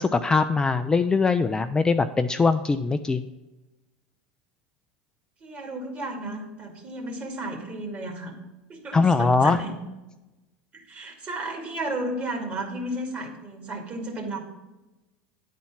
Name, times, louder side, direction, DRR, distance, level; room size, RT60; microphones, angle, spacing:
voice 1, 0.0-3.2 8.9-9.6, left 4 dB, 15° left, 9 dB, 0.3 m, -21 dB
voice 2, 5.4-8.3 8.7-9.8 10.7-14.4, right 1 dB, 35° right, 1 dB, 2.2 m, -33 dB
9.3 x 4.2 x 5.7 m, 1.1 s
hypercardioid pair, 95°, 5 cm